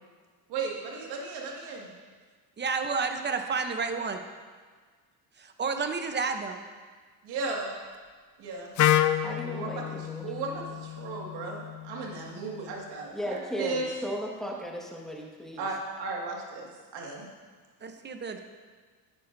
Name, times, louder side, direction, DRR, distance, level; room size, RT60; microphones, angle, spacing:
voice 1, 0.5-1.9 7.2-7.7 8.4-8.7 9.4-9.8 10.2-13.9 15.6-16.7 16.9-17.3, right 3 dB, 75° right, -2 dB, 2.1 m, -35 dB
voice 2, 2.6-4.2 5.4-6.6 17.8-18.4, right 5 dB, 25° right, 6 dB, 0.8 m, -30 dB
Wind instrument woodwind instrument, 8.8-12.7, left 12 dB, 50° left, 0.5 m, -29 dB
voice 3, 9.2-10.3 13.1-15.7, equal, ahead, -2 dB, 1.7 m, -36 dB
11.5 x 9.1 x 2.7 m, 1.5 s
cardioid pair, 100°, 39 cm